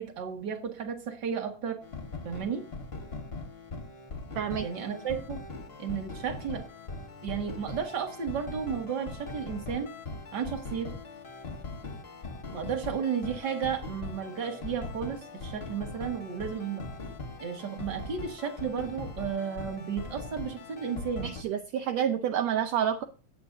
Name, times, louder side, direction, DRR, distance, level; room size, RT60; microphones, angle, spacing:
voice 1, 0.0-1.8 2.2-2.6 4.6-5.4 5.8-6.7 7.2-9.9 10.3-11.0 12.5-16.8 17.4-21.3, right 7 dB, 40° right, 4 dB, 2.1 m, -33 dB
sound 1, 1.8-21.4, left 3 dB, 45° left, 0.7 m, -41 dB
voice 2, 4.4-4.7 21.2-23.0, right 9 dB, 75° right, 6 dB, 1.8 m, -28 dB
16.0 x 8.4 x 2.7 m, 0.37 s
omnidirectional pair, 3.4 m